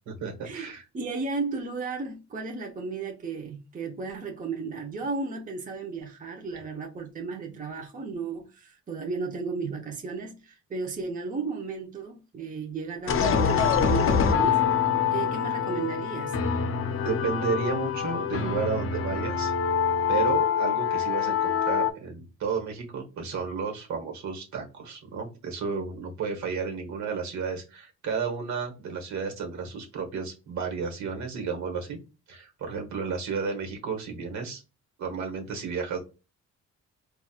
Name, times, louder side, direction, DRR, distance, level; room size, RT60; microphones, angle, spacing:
voice 1, 0.1-0.8 17.0-19.5 20.1-32.0 32.3-34.6 35.0-36.0, right 5 dB, 65° right, 1.3 m, -32 dB
voice 2, 0.9-14.6 15.1-16.4, right 4 dB, 25° right, 0.7 m, -34 dB
sound 1, 13.1-21.9, left 7 dB, 45° left, 0.6 m, -25 dB
4.1 x 2.4 x 2.3 m
cardioid pair, 90°, 30 cm